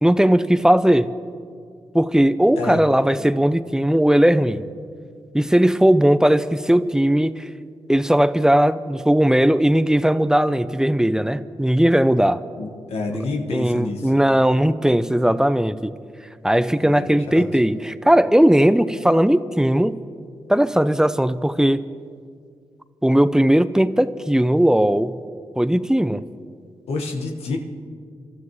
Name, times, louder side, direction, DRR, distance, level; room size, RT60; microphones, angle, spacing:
voice 1, 0.0-1.1 1.9-4.7 5.3-7.5 7.9-12.4 13.5-15.9 16.4-20.0 20.5-21.8 23.0-25.2 25.6-26.2, right 1 dB, 5° right, 14 dB, 0.6 m, -18 dB
voice 2, 12.6-14.1 16.8-17.5 26.9-27.6, left 3 dB, 85° left, 2 dB, 1.5 m, -28 dB
27.5 x 13.0 x 3.2 m, 2.1 s
supercardioid pair, 45°, 10 cm